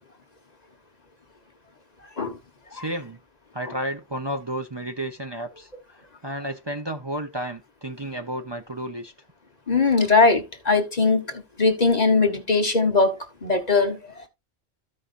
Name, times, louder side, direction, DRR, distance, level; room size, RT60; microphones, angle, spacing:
voice 1, 2.7-3.2 3.5-5.7 6.2-9.1, right 1 dB, 25° right, 0.9 m, -32 dB
voice 2, 9.7-14.3, left 4 dB, 40° left, 1.4 m, -21 dB
14.0 x 5.4 x 2.6 m
omnidirectional pair, 1.1 m